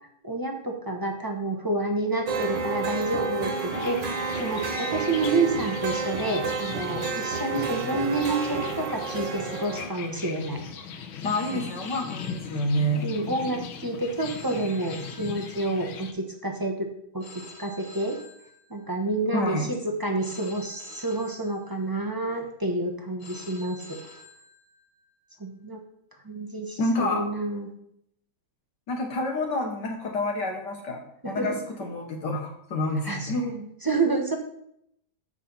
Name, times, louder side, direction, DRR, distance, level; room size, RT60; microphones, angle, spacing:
voice 1, 0.2-4.1 4.4-10.6 11.5-11.6 13.0-16.9 17.1-17.2 17.6-18.2 18.7-24.0 25.4-25.8 26.2-27.7 31.2-31.5 33.0-34.4, right 2 dB, 15° right, 3 dB, 0.7 m, -29 dB
sound 1, 2.3-9.9, right 4 dB, 65° right, 2.0 m, -30 dB
sound 2, 3.7-16.1, left 6 dB, 85° left, 1.7 m, -39 dB
voice 2, 11.2-13.1 19.3-19.7 26.8-27.3 28.9-31.5 31.8-33.6, left 1 dB, 60° left, 1 dB, 1.7 m, -28 dB
Telephone, 11.2-13.1 14.2-16.1 17.2-19.1 20.2-22.1 23.2-25.1, left 2 dB, 45° left, 2.2 m, -48 dB
8.0 x 6.1 x 5.5 m, 0.73 s
omnidirectional pair, 2.2 m